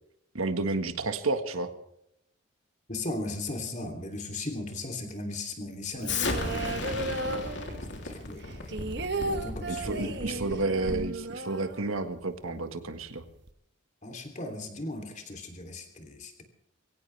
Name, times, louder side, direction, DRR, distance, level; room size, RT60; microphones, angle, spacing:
voice 1, 0.3-1.7 9.7-13.2, right 3 dB, 90° right, 8 dB, 1.7 m, -31 dB
voice 2, 2.9-7.2 7.9-8.8 9.1-10.4 14.0-16.4, left 2 dB, 35° left, 4 dB, 3.2 m, -37 dB
sound 1, 5.9-8.1 8.4-12.3 12.6-12.7 13.0-13.5, right 2 dB, 55° right, 1.3 m, -35 dB
Explosion, 6.0-11.2, left 3 dB, 55° left, 3.2 m, -35 dB
22.5 x 17.5 x 3.4 m, 0.80 s
head